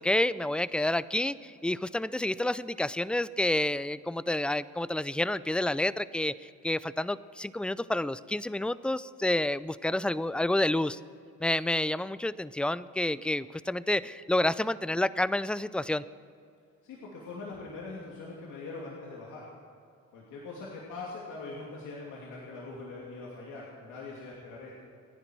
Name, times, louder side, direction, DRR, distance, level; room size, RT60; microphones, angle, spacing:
voice 1, 0.0-11.0 11.4-16.0, left 1 dB, 5° left, 17 dB, 0.4 m, -29 dB
voice 2, 16.8-19.4 20.1-24.7, left 3 dB, 85° left, -4 dB, 2.9 m, -42 dB
28.0 x 10.5 x 4.6 m, 2.4 s
cardioid pair, 90°, 30 cm